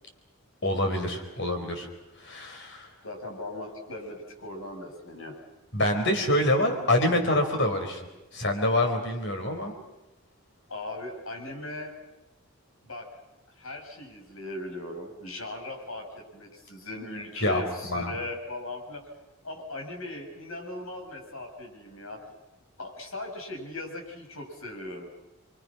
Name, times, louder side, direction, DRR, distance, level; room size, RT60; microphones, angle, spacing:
voice 1, 0.6-1.9 2.2-2.9 5.7-8.0 8.3-9.7 17.4-18.1, left 1 dB, 60° left, 4 dB, 4.8 m, -26 dB
voice 2, 3.0-5.3 10.7-11.9 12.8-13.1 13.6-19.0 19.4-22.2 22.8-25.1, left 2 dB, 85° left, 2 dB, 7.2 m, -38 dB
29.0 x 25.0 x 6.2 m, 0.96 s
head